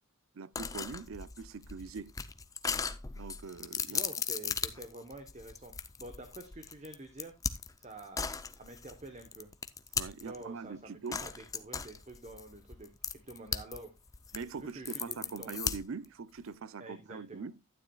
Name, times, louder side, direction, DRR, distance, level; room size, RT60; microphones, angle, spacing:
voice 1, 0.3-2.1 3.1-4.0 9.9-11.3 14.3-17.5, right 5 dB, 70° right, 0.5 m, -42 dB
sound 1, 0.6-10.4 11.1-13.8 14.1-16.1, left 6 dB, 15° left, 0.5 m, -37 dB
voice 2, 3.9-7.3 7.8-9.5 10.2-13.9 14.5-15.5 16.8-17.5, right 2 dB, 30° right, 1.0 m, -48 dB
12.0 x 9.8 x 2.3 m
head